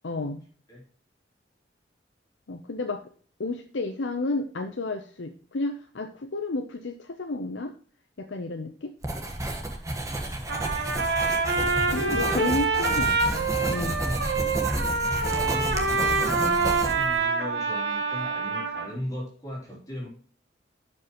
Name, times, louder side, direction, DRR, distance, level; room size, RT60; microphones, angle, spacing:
voice 1, 0.0-0.4 2.5-3.0 3.4-7.7 8.2-8.9 11.9-14.0, left 2 dB, 90° left, 5 dB, 0.7 m, -31 dB
Writing, 9.0-17.2, right 1 dB, 20° right, 1.4 m, -31 dB
voice 2, 10.1-10.8 11.8-12.4 15.0-20.1, equal, 20° left, -4 dB, 3.2 m, -38 dB
Trumpet, 10.5-18.9, right 4 dB, 70° right, 1.8 m, -26 dB
12.0 x 5.4 x 3.0 m, 0.43 s
head